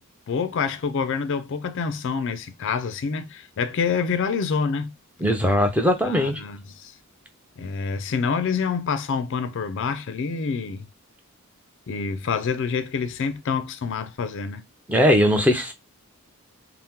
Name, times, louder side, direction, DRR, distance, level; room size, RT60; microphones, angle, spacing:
voice 1, 0.3-5.0 6.0-6.9 7.6-10.9 11.9-14.6, left 5 dB, 60° left, 0.4 m, -27 dB
voice 2, 5.2-6.4 14.9-15.7, equal, 5° right, 0.5 m, -19 dB
2.8 x 2.0 x 3.4 m
head